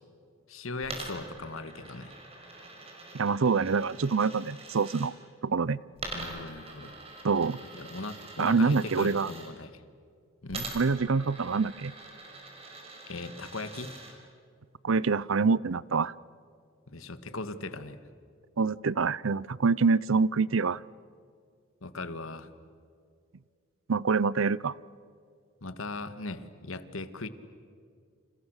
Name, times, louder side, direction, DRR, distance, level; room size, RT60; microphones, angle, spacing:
voice 1, 0.5-2.1 6.1-6.9 7.7-9.7 10.4-10.7 13.1-13.9 16.9-18.0 21.8-22.5 25.6-27.3, left 2 dB, 85° left, 11 dB, 1.7 m, -39 dB
Coin (dropping), 0.8-5.1 6.0-9.5 10.5-14.1, right 3 dB, 30° right, 5.3 m, -44 dB
voice 2, 3.1-5.1 5.4-5.8 7.2-7.6 8.4-9.3 10.7-11.9 14.8-16.1 18.6-20.8 23.9-24.7, right 4 dB, 75° right, 21 dB, 0.6 m, -26 dB
29.5 x 28.5 x 6.6 m, 2.2 s
head